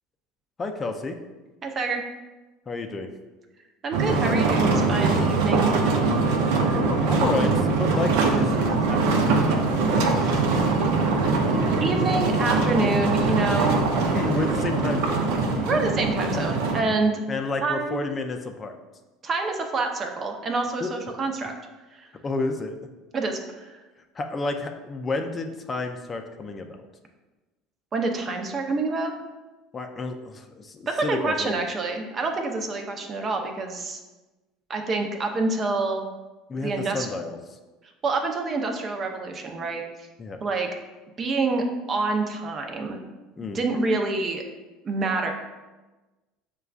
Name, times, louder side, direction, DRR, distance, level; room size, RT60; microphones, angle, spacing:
voice 1, 0.6-1.2 2.7-3.1 6.7-9.5 11.3-12.1 14.1-15.2 16.3-16.4 17.3-18.7 20.8-20.9 22.2-22.8 24.1-26.8 29.7-31.5 36.5-37.4 40.2-40.4 43.4-43.6, left 3 dB, 30° left, 5 dB, 0.4 m, -31 dB
voice 2, 1.6-2.0 3.8-5.8 10.1-10.4 11.8-13.8 15.7-17.1 17.6-18.0 19.2-21.5 21.9-22.1 23.1-23.8 27.9-29.2 30.9-34.0 34.7-36.1 36.6-37.1 38.0-40.1 40.4-40.7 41.2-43.0 43.5-44.4 44.8-45.3, right 3 dB, 35° right, 3 dB, 0.6 m, -27 dB
sound 1, 3.9-16.8, right 3 dB, 75° right, 0.6 m, -22 dB
6.5 x 2.3 x 2.4 m, 1.2 s
supercardioid pair, 90°, 0 cm